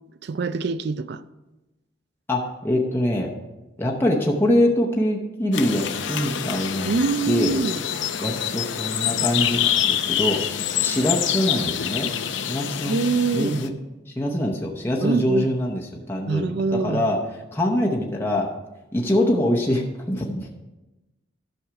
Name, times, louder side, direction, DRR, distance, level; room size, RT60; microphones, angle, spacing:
voice 1, 0.2-1.2 6.9-7.8 12.8-13.7 15.0-15.5 16.3-17.0, right 4 dB, 55° right, 0.4 m, -24 dB
voice 2, 2.3-3.3 3.8-7.0 7.3-7.6 8.2-10.4 10.8-12.1 12.5-13.0 13.3-13.7 14.1-17.2 17.5-18.5 18.9-20.5, left 1 dB, 10° left, 0.8 m, -24 dB
sound 1, 5.5-13.7, left 9 dB, 65° left, 0.6 m, -26 dB
11.5 x 6.4 x 4.7 m
head